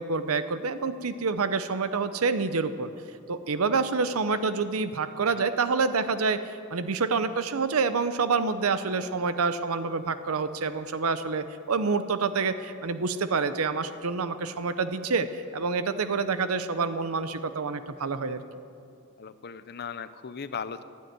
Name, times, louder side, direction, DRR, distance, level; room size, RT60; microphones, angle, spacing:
voice 1, 0.0-2.9 3.3-18.4, right 4 dB, 90° right, 11 dB, 0.7 m, -27 dB
voice 2, 5.3-5.7 19.2-20.8, left 6 dB, 50° left, 13 dB, 0.6 m, -38 dB
16.5 x 9.5 x 9.3 m, 2.6 s
head